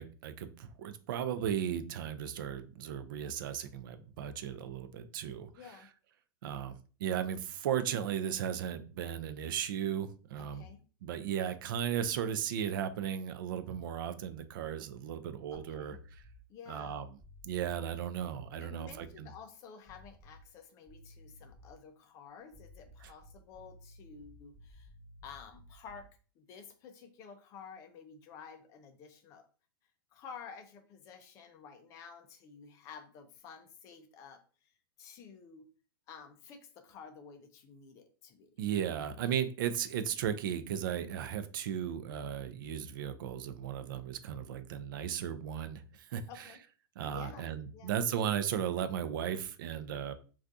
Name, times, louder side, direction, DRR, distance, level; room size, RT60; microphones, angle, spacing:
voice 1, 0.0-5.5 6.4-10.7 11.0-16.2 16.7-17.1 17.4-19.3 23.0-23.1 38.6-46.2 47.0-50.1, right 9 dB, 60° right, 0.4 m, -36 dB
voice 2, 5.5-5.9 10.4-10.8 15.5-16.0 16.5-17.0 18.5-24.9 25.2-26.1 26.4-29.5 30.1-35.6 36.1-38.5 46.3-46.6 47.1-47.5 47.7-48.0, left 6 dB, 25° left, 0.4 m, -51 dB
sound 1, 15.5-16.5 17.2-19.1 19.9-20.6 20.9-21.8 22.5-26.2, left 1 dB, 15° right, 0.8 m, -56 dB
2.6 x 2.4 x 3.4 m
supercardioid pair, 160°, 12 cm